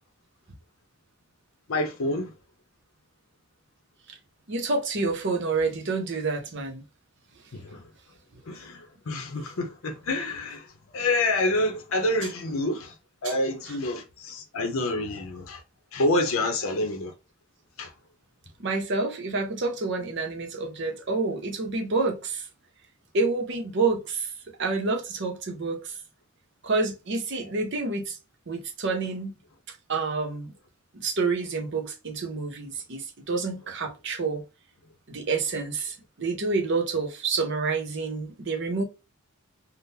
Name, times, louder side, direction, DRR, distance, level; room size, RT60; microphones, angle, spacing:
voice 1, 1.7-2.3 7.5-7.8 8.5-10.7 10.9-12.9 13.2-15.6 15.9-17.1 17.8-17.9, left 2 dB, 75° left, 0.6 m, -27 dB
voice 2, 4.5-6.8 13.2-13.3 18.6-22.5 23.1-24.3 24.6-25.9 26.6-28.2 28.5-29.3 29.9-30.5 30.9-34.4 35.1-38.8, right 3 dB, 55° right, 0.7 m, -28 dB
3.7 x 2.1 x 2.7 m
head